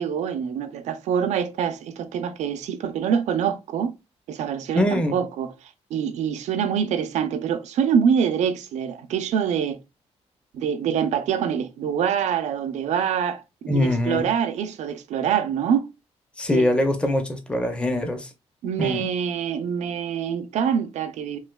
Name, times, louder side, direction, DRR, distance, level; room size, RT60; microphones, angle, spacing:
voice 1, 0.0-3.9 4.3-5.5 5.9-9.8 10.5-15.9 16.5-16.7 17.0-17.1 18.6-21.4, right 8 dB, 85° right, 0.5 m, -25 dB
voice 2, 4.7-5.2 13.7-14.3 16.4-18.3 18.8-19.1, left 1 dB, 10° left, 0.4 m, -23 dB
3.1 x 2.6 x 2.2 m
wide cardioid pair, 175°, 12 cm